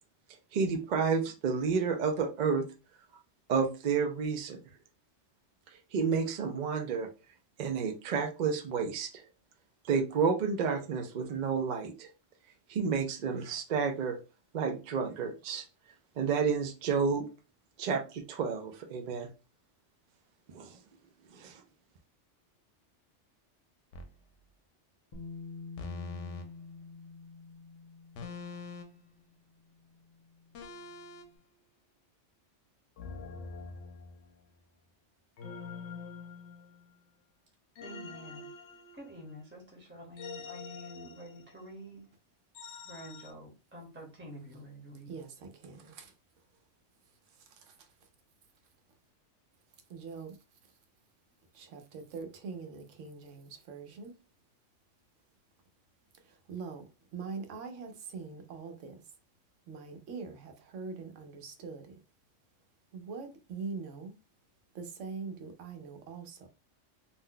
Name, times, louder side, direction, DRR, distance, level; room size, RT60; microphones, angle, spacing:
voice 1, 0.5-2.7 3.5-4.6 5.9-7.1 7.6-9.2 9.9-12.1 12.7-14.2 14.5-15.6 16.2-17.3 17.8-19.3 20.5-20.7 21.3-21.6, right 5 dB, 65° right, 5 dB, 0.4 m, -30 dB
sound 1, 23.9-24.2 25.8-26.5 28.2-29.0 30.5-31.3 33.0-34.4 35.4-37.0 37.8-39.4 40.2-41.7 42.6-43.3, left 4 dB, 80° left, 0.9 m, -45 dB
Bass guitar, 25.1-31.2, left 4 dB, 45° left, 0.8 m, -49 dB
voice 2, 37.8-38.5 39.0-42.0 42.9-45.1, right 1 dB, 10° right, 0 dB, 0.7 m, -48 dB
voice 3, 45.1-46.1 47.3-48.1 49.9-50.4 51.5-54.1 56.2-59.0 59.7-62.0 62.9-64.1 64.7-66.5, right 4 dB, 80° right, 6 dB, 1.0 m, -43 dB
2.6 x 2.1 x 3.7 m, 0.31 s
omnidirectional pair, 1.2 m